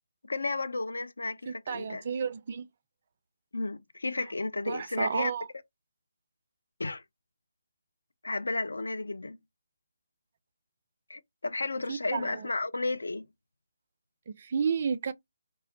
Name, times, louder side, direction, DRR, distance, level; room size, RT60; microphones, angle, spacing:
voice 1, 0.2-2.0 3.5-5.3 6.8-7.0 8.2-9.4 11.1-13.2, left 3 dB, 65° left, 0.4 m, -33 dB
voice 2, 1.5-2.7 4.7-5.4 11.9-12.5 14.3-15.1, right 6 dB, 40° right, 0.3 m, -32 dB
2.2 x 2.1 x 3.4 m
figure-of-eight pair, 145°, 0 cm